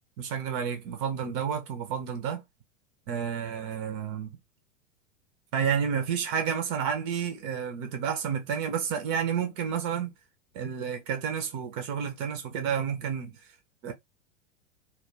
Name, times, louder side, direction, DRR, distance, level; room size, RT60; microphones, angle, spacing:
voice 1, 0.2-2.4 3.1-4.4 5.5-10.1 10.5-13.4 13.8-13.9, right 7 dB, 25° right, 0.3 m, -30 dB
2.3 x 2.1 x 3.3 m
figure-of-eight pair, 90°, 38 cm